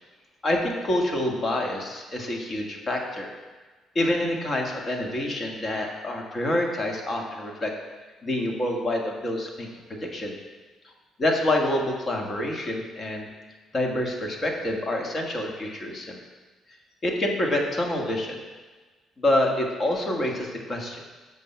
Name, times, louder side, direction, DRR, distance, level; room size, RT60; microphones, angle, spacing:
voice 1, 0.4-3.4 3.9-7.7 8.2-10.4 10.8-10.9 11.2-13.3 13.7-16.2 17.0-18.4 19.2-21.0, left 1 dB, 35° left, 1 dB, 1.5 m, -27 dB
15.5 x 5.4 x 2.2 m, 1.3 s
hypercardioid pair, 45°, 0 cm